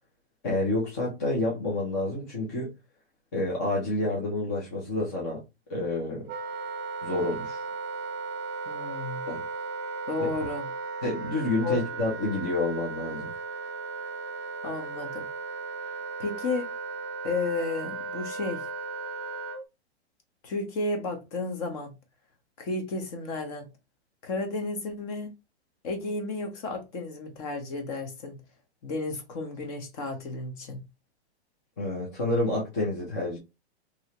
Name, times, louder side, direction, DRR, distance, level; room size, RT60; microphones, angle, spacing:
voice 1, 0.4-2.7 3.3-5.4 5.7-6.3 7.0-7.6 9.3-9.4 10.2-10.3 11.0-13.3 31.8-33.4, left 2 dB, 15° left, 0.3 m, -29 dB
Wind instrument woodwind instrument, 6.3-19.6, right 4 dB, 40° right, 0.7 m, -36 dB
voice 2, 8.7-9.2 10.1-10.7 11.6-11.8 14.6-15.3 16.2-16.7 17.2-18.7 20.4-21.9 22.6-23.7 24.2-25.3 25.8-28.4 28.8-30.8, left 3 dB, 35° left, 0.9 m, -32 dB
3.0 x 2.8 x 2.9 m
hypercardioid pair, 155°, 34 cm